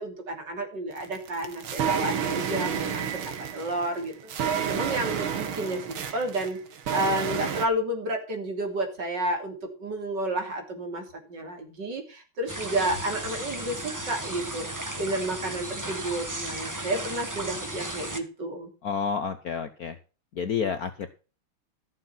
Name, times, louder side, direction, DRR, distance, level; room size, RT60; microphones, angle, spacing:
voice 1, 0.0-6.6 6.9-18.7, right 1 dB, 55° right, 4 dB, 3.6 m, -31 dB
sound 1, 1.0-7.7, right 7 dB, 70° right, 2.2 m, -30 dB
sound 2, 12.5-18.2, right 1 dB, 10° right, 1.1 m, -35 dB
voice 2, 18.8-20.0 20.3-21.1, left 6 dB, 55° left, 10 dB, 1.1 m, -29 dB
14.0 x 7.4 x 5.7 m, 0.34 s
omnidirectional pair, 2.4 m